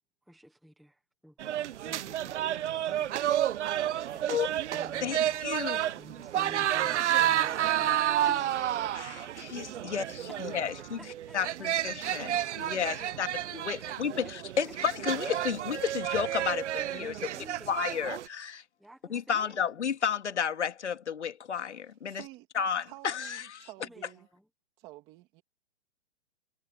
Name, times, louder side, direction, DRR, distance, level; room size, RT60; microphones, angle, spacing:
voice 1, 0.2-1.5 2.9-3.2 4.1-4.3 4.7-5.4 5.9-9.9 10.4-12.3 13.0-13.4 13.8-14.7 17.0-18.0 18.8-19.7 23.8-24.5, equal, ahead, 0.7 m, -52 dB
sound 1, 1.4-18.3, right 11 dB, 80° right, 0.5 m, -31 dB
voice 2, 5.0-6.0 8.9-11.0 11.3-13.3 13.5-14.3 14.6-17.1 17.7-18.6 19.1-22.2 22.6-23.7, left 7 dB, 75° left, 2.5 m, -32 dB
voice 3, 22.1-22.5 22.9-24.3 24.8-25.4, right 18 dB, 15° right, 2.7 m, -50 dB
hypercardioid pair, 175°, 35 cm